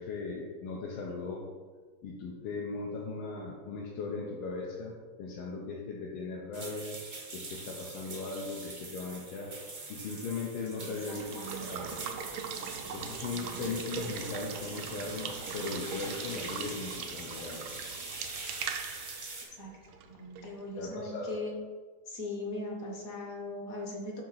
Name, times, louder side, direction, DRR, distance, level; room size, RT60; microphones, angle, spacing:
voice 1, 0.0-1.5 2.0-4.9 5.2-7.0 7.3-9.6 9.9-12.0 12.8-17.7 20.8-21.4, left 4 dB, 80° left, -3 dB, 1.6 m, -38 dB
sound 1, 6.5-19.4, right 3 dB, 35° right, 0.7 m, -43 dB
voice 2, 10.8-11.9 19.6-19.7 20.1-21.5 22.1-24.2, left 2 dB, 50° left, 0 dB, 1.2 m, -39 dB
Water / Water tap faucet / Liquid, 11.0-20.6, right 7 dB, 80° right, 1.4 m, -41 dB
7.6 x 2.9 x 5.7 m, 1.5 s
omnidirectional pair, 2.3 m